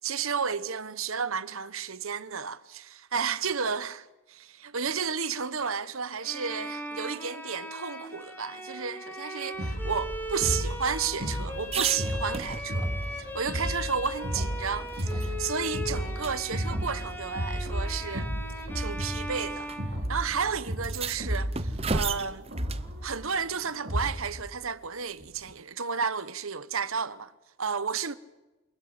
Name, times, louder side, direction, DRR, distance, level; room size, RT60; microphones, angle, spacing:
voice 1, 0.0-12.9 13.2-18.3 18.7-19.7 20.1-22.4 23.0-27.3 27.6-28.1, right 6 dB, 80° right, 1.2 m, -32 dB
Bowed string instrument, 6.2-20.5, left 1 dB, 10° left, 3.2 m, -39 dB
sound 1, 9.6-24.4, equal, 55° right, 4.8 m, -33 dB
sound 2, 10.1-13.0 13.4-13.5 13.9-15.3 15.6-15.8 16.2-16.3 17.4-17.5 18.4-18.7 19.7-19.8 20.0-20.1 20.7-22.9 25.2-25.6, right 4 dB, 30° right, 0.8 m, -35 dB
28.5 x 20.5 x 8.3 m
head